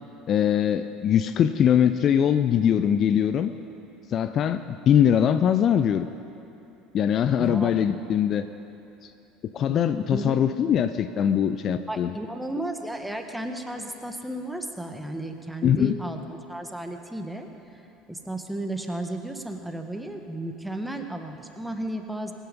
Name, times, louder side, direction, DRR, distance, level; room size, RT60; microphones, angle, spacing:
voice 1, 0.3-3.5 4.1-6.1 6.9-8.5 9.0-9.1 9.5-12.1 15.6-16.0, left 9 dB, 40° left, 11 dB, 0.5 m, -22 dB
voice 2, 7.4-7.7 9.7-9.8 10.1-10.4 11.9-17.5 17.7-17.8 18.1-22.3, right 1 dB, 5° right, 5 dB, 1.5 m, -33 dB
22.5 x 11.0 x 5.4 m, 2.8 s
figure-of-eight pair, 65°, 0 cm